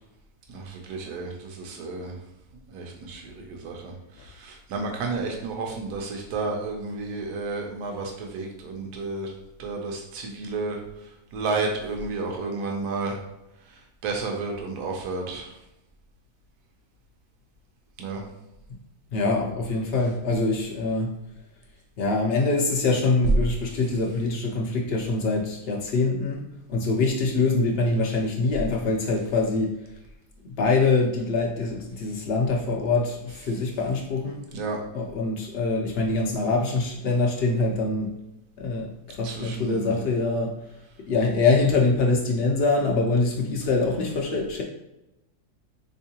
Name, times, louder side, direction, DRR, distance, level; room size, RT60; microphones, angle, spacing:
voice 1, 0.5-2.2 2.7-3.9 4.2-9.3 9.6-10.8 11.3-13.2 14.0-15.5 18.0-18.2 34.5-34.8 39.2-40.0, right 3 dB, 80° right, 1 dB, 1.2 m, -31 dB
voice 2, 19.1-21.1 22.0-26.4 26.7-29.8 30.4-34.4 34.9-38.1 38.6-40.5 41.1-44.6, left 3 dB, 90° left, -1 dB, 0.5 m, -24 dB
3.5 x 3.1 x 2.8 m, 0.90 s
omnidirectional pair, 1.7 m